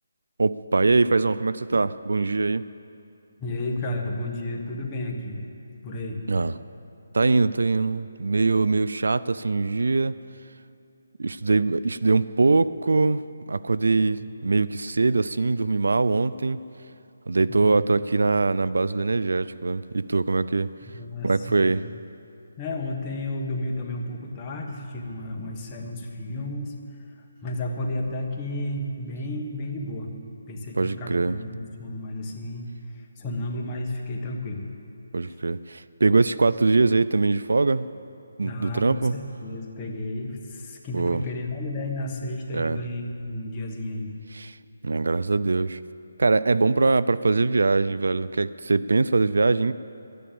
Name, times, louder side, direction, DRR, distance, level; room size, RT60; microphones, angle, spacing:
voice 1, 0.4-2.7 6.3-6.5 7.1-10.2 11.2-13.2 13.5-16.6 17.3-20.7 21.2-21.8 30.8-31.4 35.1-37.9 38.4-39.1 40.9-41.2 42.5-42.8 44.3-44.6 44.8-45.8 46.2-49.7, right 3 dB, 80° right, 16 dB, 0.4 m, -22 dB
voice 2, 3.4-5.4 5.8-6.2 14.2-14.3 17.5-17.9 20.8-21.8 22.6-26.7 27.4-30.1 30.5-32.7 32.9-34.7 35.3-35.4 38.4-44.1, left 1 dB, 20° left, 0 dB, 1.5 m, -32 dB
12.0 x 10.0 x 8.7 m, 2.6 s
hypercardioid pair, 160°, 0 cm